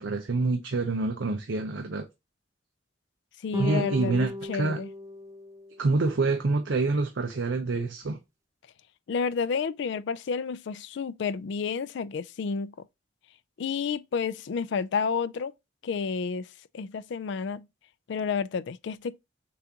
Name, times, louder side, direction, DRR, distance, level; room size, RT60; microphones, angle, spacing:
voice 1, 0.0-2.1 3.6-4.8 5.8-8.2, right 3 dB, 70° right, 0.6 m, -27 dB
voice 2, 3.4-4.9 9.1-12.7 13.6-15.5 15.8-16.5 16.7-17.7 18.1-19.2, left 5 dB, 65° left, 0.4 m, -30 dB
sound 1, 3.5-6.1, left 1 dB, 20° right, 0.4 m, -36 dB
6.9 x 2.5 x 2.8 m
head